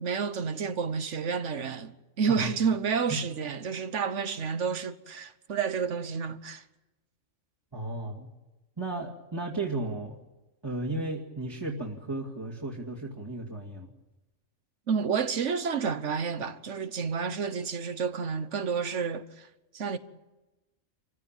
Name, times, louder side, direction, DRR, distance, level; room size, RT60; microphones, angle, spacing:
voice 1, 0.0-6.6 14.9-19.5 19.7-20.0, right 6 dB, 65° right, 1.5 m, -30 dB
voice 2, 7.7-8.3 8.8-10.2 10.6-13.9, right 2 dB, 20° right, 2.4 m, -34 dB
27.5 x 15.5 x 9.0 m
omnidirectional pair, 1.3 m